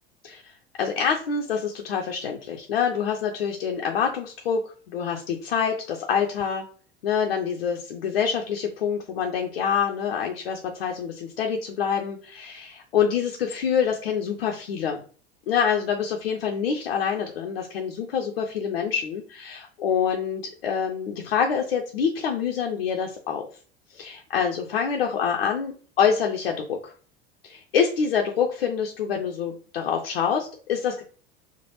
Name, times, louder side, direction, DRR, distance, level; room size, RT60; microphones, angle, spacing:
voice 1, 0.8-6.6 7.0-15.0 15.5-23.4 23.9-26.9 27.4-31.0, left 7 dB, 85° left, 1 dB, 0.5 m, -26 dB
3.2 x 2.0 x 2.9 m, 0.41 s
hypercardioid pair, 80°, 29 cm